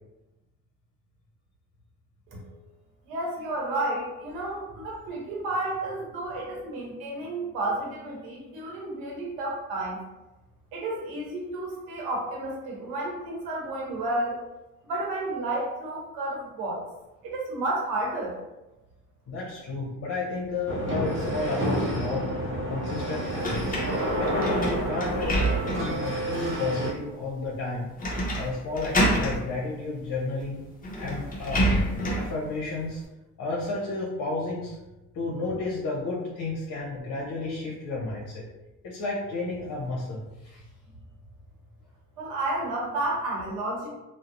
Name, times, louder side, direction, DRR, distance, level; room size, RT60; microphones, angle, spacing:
voice 1, 3.0-10.0 10.7-14.4 14.9-16.8 17.2-18.4 42.2-43.9, right 2 dB, 90° right, -3 dB, 0.9 m, -31 dB
voice 2, 19.3-22.3 22.7-23.7 24.1-27.9 28.3-30.6 30.9-31.6 32.1-33.0 33.4-34.8 35.1-38.4 38.8-40.6, left 3 dB, 60° left, -4 dB, 0.7 m, -32 dB
sound 1, 20.7-26.9, right 1 dB, 35° right, 0.7 m, -29 dB
sound 2, 23.4-26.0 26.5-26.6 28.0-28.5 28.8-29.4 30.4-30.5 30.8-32.3, equal, 25° left, 0.6 m, -27 dB
2.7 x 2.0 x 2.5 m, 1.0 s
supercardioid pair, 75°, 36 cm